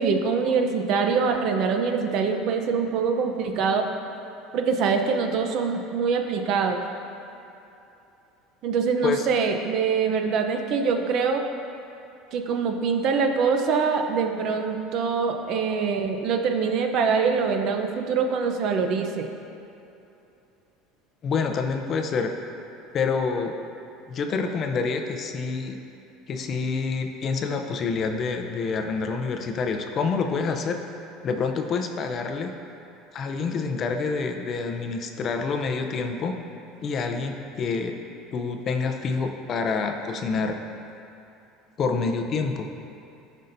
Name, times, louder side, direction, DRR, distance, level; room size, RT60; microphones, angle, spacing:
voice 1, 0.0-3.9 4.5-6.8 8.6-11.4 12.3-19.3, right 5 dB, 50° right, 4 dB, 0.6 m, -24 dB
voice 2, 21.2-22.4 22.9-23.6 24.1-25.8 26.3-30.8 31.2-32.5 33.1-36.3 36.8-37.9 38.3-40.6 41.8-42.7, left 4 dB, 35° left, 5 dB, 0.5 m, -27 dB
13.5 x 5.4 x 2.6 m, 2.8 s
cardioid pair, 150°, 0 cm